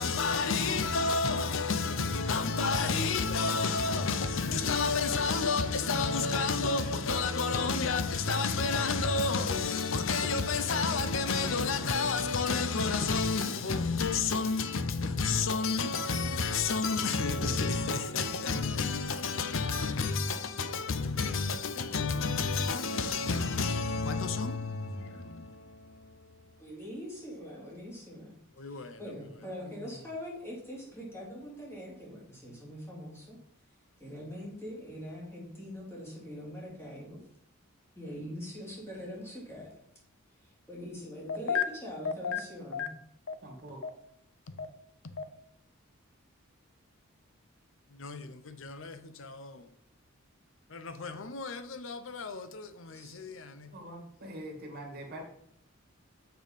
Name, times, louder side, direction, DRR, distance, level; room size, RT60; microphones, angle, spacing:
voice 1, 0.0-26.5 28.6-29.0 41.5-41.6 42.2-42.4 42.7-42.9 43.3-43.4 44.5-44.7 45.0-45.3 47.9-49.7 50.7-53.7, left 4 dB, 65° left, 0.7 m, -30 dB
voice 2, 26.6-28.4 28.6-33.4 34.0-37.2 37.9-39.8 40.4-42.9 52.9-53.2, equal, 10° left, 2.9 m, -43 dB
voice 3, 43.4-43.8 53.7-55.2, right 1 dB, 45° right, 2.1 m, -44 dB
7.1 x 6.5 x 5.2 m
head